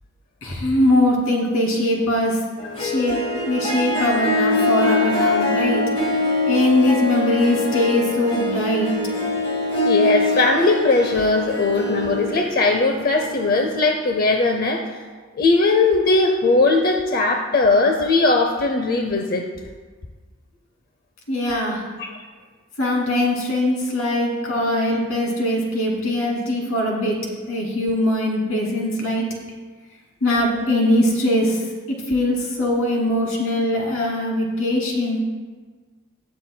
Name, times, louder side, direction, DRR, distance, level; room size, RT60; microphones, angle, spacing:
voice 1, 0.4-2.4 2.8-3.2 3.5-5.8 6.5-8.9 21.3-21.8 22.8-27.2 27.5-29.3 30.2-31.6 31.9-35.2, left 1 dB, 85° left, -2 dB, 2.6 m, -21 dB
Harp, 2.6-13.8, left 2 dB, 25° left, 1.3 m, -23 dB
voice 2, 9.8-14.8 15.4-19.4 22.0-22.2, left 3 dB, 45° left, 3 dB, 0.6 m, -19 dB
18.0 x 7.5 x 2.2 m, 1.5 s
head